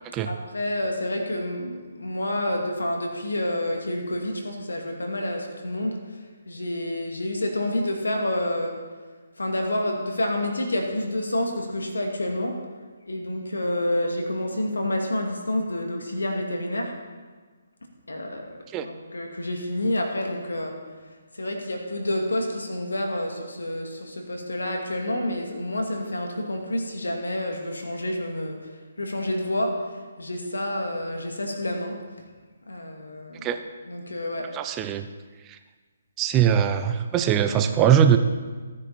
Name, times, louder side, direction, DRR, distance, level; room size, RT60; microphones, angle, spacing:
voice 1, 0.3-6.0 6.5-8.8 9.4-12.6 13.0-16.9 18.1-20.8 21.3-28.6 29.0-29.8 30.2-32.0 32.7-33.5 33.9-34.5, left 1 dB, 85° left, 2 dB, 2.4 m, -28 dB
voice 2, 34.5-35.1 36.2-38.2, right 9 dB, 20° right, 8 dB, 0.6 m, -21 dB
14.5 x 9.6 x 4.3 m, 1.4 s
figure-of-eight pair, 145°, 0 cm